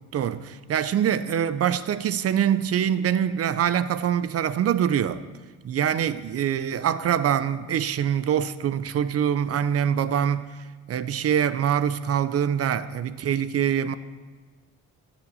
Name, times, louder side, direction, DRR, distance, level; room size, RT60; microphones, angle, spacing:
voice 1, 0.1-5.2 5.6-10.5 10.9-13.9, right 9 dB, 50° right, 0.6 m, -24 dB
14.5 x 5.0 x 6.9 m
cardioid pair, 90°, 30 cm